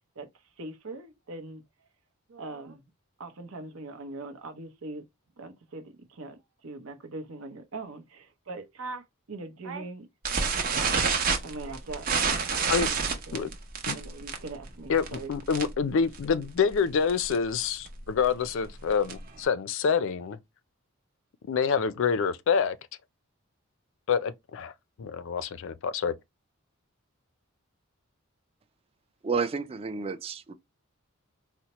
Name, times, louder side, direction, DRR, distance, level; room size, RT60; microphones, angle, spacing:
voice 1, 0.6-1.6 2.3-2.8 3.2-5.0 5.4-10.5 11.4-12.5 12.9-13.5 13.9-15.3, right 3 dB, 80° right, 0.7 m, -41 dB
sound 1, 10.2-15.9 16.1-16.4 16.7-16.8 17.1-17.4 17.9-19.4, right 5 dB, 45° right, 0.7 m, -28 dB
voice 2, 14.9-20.4 21.5-22.8 24.1-24.7 25.0-26.1, left 6 dB, 65° left, 0.4 m, -27 dB
voice 3, 29.2-30.5, right 5 dB, 30° right, 0.3 m, -30 dB
4.2 x 2.1 x 2.9 m
head